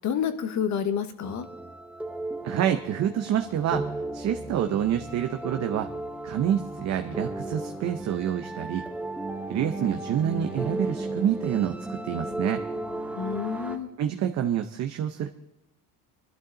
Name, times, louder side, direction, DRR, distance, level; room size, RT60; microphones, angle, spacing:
voice 1, 0.0-1.5 13.2-13.9, left 8 dB, 50° left, 9 dB, 1.3 m, -29 dB
sound 1, 1.2-13.8, right 2 dB, 5° right, 0.9 m, -35 dB
voice 2, 2.4-3.9 4.1-5.9 6.2-8.9 9.5-12.6 14.0-15.3, right 9 dB, 50° right, 6 dB, 0.8 m, -27 dB
24.0 x 12.0 x 3.9 m, 0.86 s
cardioid pair, 165°, 35 cm